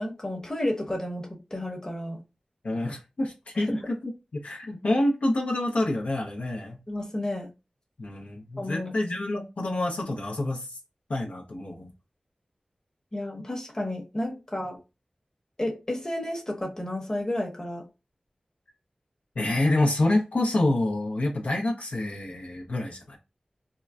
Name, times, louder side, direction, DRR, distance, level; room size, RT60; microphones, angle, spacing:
voice 1, 0.0-2.2 3.6-3.8 6.9-7.5 8.6-8.9 13.1-14.8 15.6-17.9, left 1 dB, 25° left, 0.9 m, -31 dB
voice 2, 2.6-4.1 4.4-6.8 8.0-10.8 11.1-11.9 19.4-23.2, left 1 dB, 85° left, 0.7 m, -27 dB
3.7 x 2.1 x 2.3 m
wide cardioid pair, 65°, 2 cm